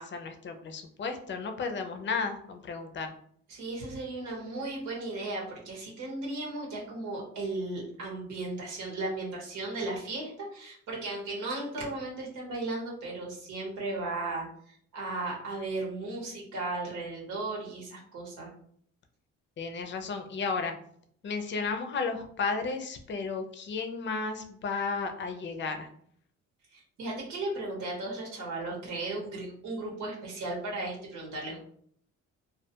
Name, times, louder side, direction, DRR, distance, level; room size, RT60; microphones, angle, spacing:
voice 1, 0.0-3.1 19.6-20.7 21.2-25.9, left 4 dB, 40° left, 6 dB, 0.5 m, -33 dB
voice 2, 3.5-18.5 26.7-31.6, right 2 dB, 85° right, -3 dB, 1.1 m, -36 dB
2.3 x 2.2 x 2.7 m, 0.63 s
cardioid pair, 90°, 30 cm